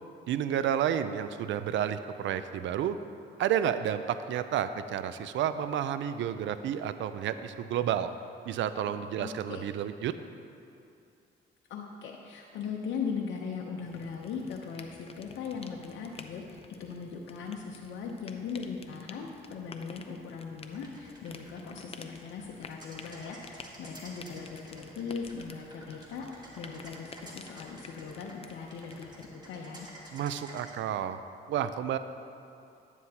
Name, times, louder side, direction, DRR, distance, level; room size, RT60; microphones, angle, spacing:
voice 1, 0.3-3.0 3.4-8.1 8.5-10.2 30.1-31.2 31.5-32.0, right 9 dB, 70° right, 11 dB, 0.4 m, -31 dB
voice 2, 9.2-9.6 11.7-29.9, left 5 dB, 75° left, -1 dB, 0.8 m, -39 dB
sound 1, 13.8-29.4, left 4 dB, 30° left, 0.6 m, -51 dB
sound 2, 20.7-30.7, right 1 dB, 20° right, 1.7 m, -51 dB
10.5 x 9.5 x 2.9 m, 2.6 s
cardioid pair, 90°, 20 cm